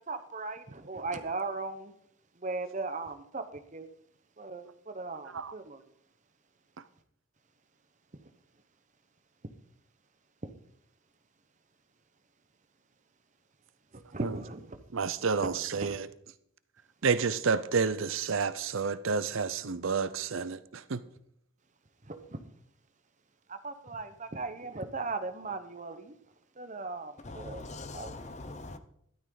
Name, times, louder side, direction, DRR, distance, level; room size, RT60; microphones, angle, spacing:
voice 1, 0.1-0.6 0.9-1.9 2.4-3.4 3.7-3.8 4.4-4.6 4.9-5.6 14.1-14.6 22.1-22.2 23.6-24.1 24.3-26.0 26.6-27.6 27.9-28.1, right 3 dB, 35° right, 1.0 m, -37 dB
voice 2, 14.9-16.1 17.0-21.0, right 5 dB, 65° right, 0.6 m, -30 dB
voice 3, 27.2-28.8, left 2 dB, 30° left, 0.8 m, -42 dB
13.0 x 12.0 x 4.0 m
head